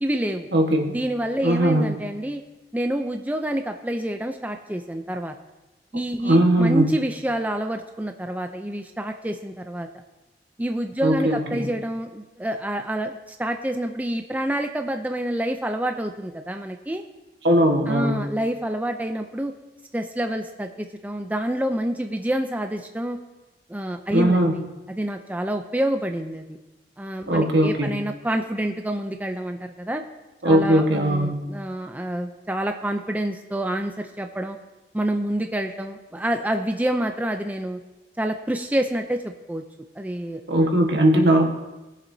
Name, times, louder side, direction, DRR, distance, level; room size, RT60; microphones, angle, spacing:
voice 1, 0.0-0.5 0.9-2.4 2.7-5.3 5.9-9.9 10.6-17.0 17.9-19.5 19.9-23.2 23.7-24.6 24.9-26.6 27.0-30.0 30.4-34.6 34.9-37.8 38.2-39.2 39.5-39.6 40.0-40.7, right 1 dB, 10° right, 5 dB, 0.4 m, -27 dB
voice 2, 0.5-1.0 1.4-1.9 6.2-6.9 11.0-11.7 17.4-18.2 24.1-24.5 27.3-27.9 30.4-31.4 40.5-41.5, right 1 dB, 75° right, 2 dB, 1.4 m, -19 dB
19.0 x 7.2 x 2.7 m, 1.1 s
head